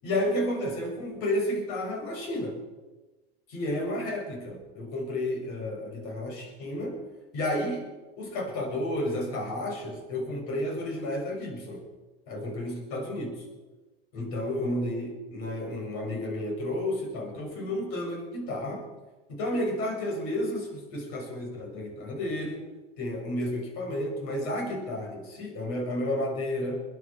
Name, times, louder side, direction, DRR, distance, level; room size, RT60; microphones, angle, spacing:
voice 1, 0.0-2.6 3.5-7.0 7.3-7.9 8.2-11.8 12.3-13.4 14.1-18.9 19.3-22.6 23.0-26.8, left 1 dB, 70° left, 1 dB, 6.6 m, -31 dB
22.0 x 10.0 x 6.2 m, 1.2 s
hypercardioid pair, 90°, 29 cm